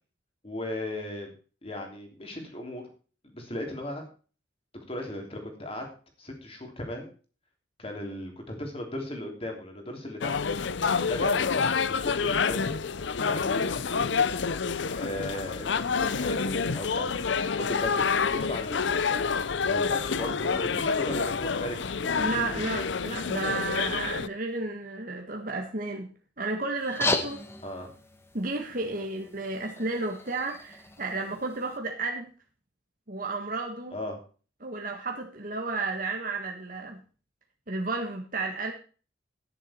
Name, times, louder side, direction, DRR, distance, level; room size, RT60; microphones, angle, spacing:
voice 1, 0.4-1.3 1.6-2.9 3.3-4.0 4.9-5.8 6.2-7.1 7.8-10.4 11.1-12.8 13.2-14.1 14.9-17.1 17.6-19.2 19.7-22.6 23.2-23.3 27.6-27.9 28.8-29.0 33.9-34.2, left 1 dB, 30° left, 3 dB, 3.2 m, -37 dB
sound 1, 10.2-24.3, left 5 dB, 70° left, 0.6 m, -28 dB
voice 2, 22.2-26.1 26.4-27.5 28.3-32.3 33.1-34.0 34.6-37.0 37.7-38.7, right 3 dB, 45° right, 2 dB, 1.5 m, -32 dB
sound 2, 26.8-31.8, left 2 dB, 15° left, 1.2 m, -35 dB
11.0 x 10.5 x 4.3 m, 0.38 s
head